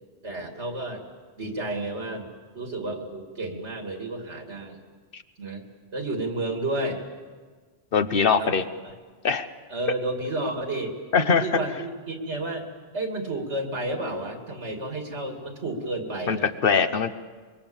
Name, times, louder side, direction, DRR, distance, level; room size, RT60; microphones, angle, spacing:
voice 1, 0.2-1.0 1.4-4.8 5.4-5.6 5.9-7.0 8.4-8.5 9.7-12.7 12.9-16.5, right 2 dB, 85° right, 3 dB, 3.0 m, -31 dB
voice 2, 7.9-8.6 9.2-9.5 11.1-11.5 16.3-17.1, left 5 dB, 55° left, 10 dB, 1.1 m, -22 dB
25.0 x 23.0 x 7.1 m, 1.5 s
omnidirectional pair, 1.1 m